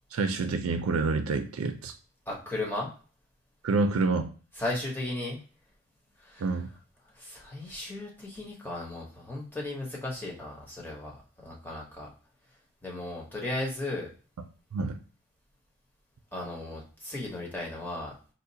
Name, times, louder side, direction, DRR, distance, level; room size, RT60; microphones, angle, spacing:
voice 1, 0.1-1.9 3.6-4.3 6.4-6.7 14.7-15.0, right 3 dB, 85° right, 8 dB, 0.4 m, -27 dB
voice 2, 2.3-2.9 4.6-5.4 6.2-6.4 7.2-11.2 11.4-12.1 12.8-14.1 16.3-18.1, left 2 dB, 10° left, -3 dB, 0.9 m, -35 dB
4.2 x 2.4 x 2.7 m, 0.38 s
head